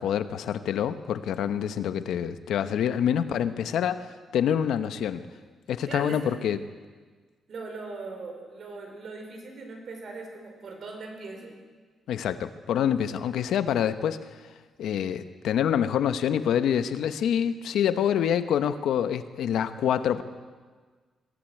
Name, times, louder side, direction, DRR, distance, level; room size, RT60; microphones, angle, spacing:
voice 1, 0.0-4.0 4.3-5.2 5.7-6.6 12.1-14.2 14.8-20.2, left 9 dB, 75° left, 11 dB, 1.0 m, -26 dB
voice 2, 5.9-6.4 7.5-11.6, right 3 dB, 45° right, 3 dB, 4.9 m, -40 dB
22.5 x 15.0 x 9.2 m, 1.5 s
cardioid pair, 175°, 0 cm